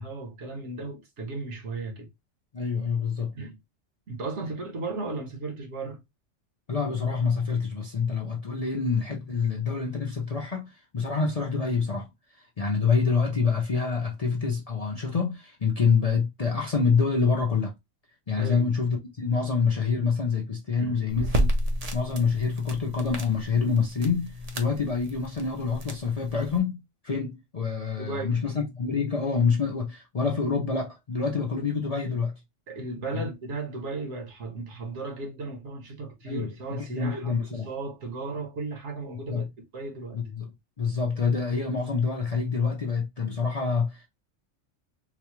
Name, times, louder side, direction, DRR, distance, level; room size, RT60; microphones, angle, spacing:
voice 1, 0.0-2.1 3.3-3.6 4.1-6.0 18.4-18.7 20.8-21.1 28.0-28.4 32.7-39.5 39.7-40.2, right 3 dB, 65° right, 1.3 m, -35 dB
voice 2, 2.5-3.3 6.7-12.1 12.6-17.7 18.3-21.5 21.9-32.3 33.1-33.3 36.2-37.7 39.3-39.5 40.1-40.5 40.8-44.1, left 5 dB, 40° left, 0.6 m, -26 dB
sound 1, 21.1-26.6, equal, 40° right, 0.6 m, -32 dB
4.0 x 2.3 x 2.9 m
omnidirectional pair, 1.3 m